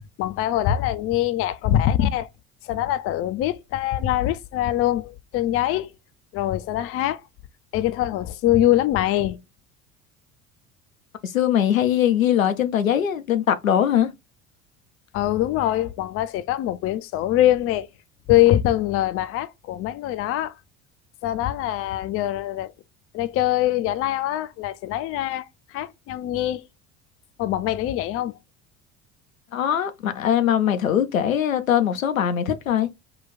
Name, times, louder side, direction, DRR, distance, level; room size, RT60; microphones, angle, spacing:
voice 1, 0.2-2.3 2.6-5.9 6.3-7.2 7.7-9.4 15.1-17.9 18.3-20.5 21.2-22.7 23.1-26.6 27.4-28.3, left 13 dB, 35° left, 0.5 m, -23 dB
voice 2, 11.2-14.1 29.5-32.9, left 10 dB, 85° left, 0.6 m, -21 dB
3.8 x 2.3 x 3.9 m
figure-of-eight pair, 60°, 40 cm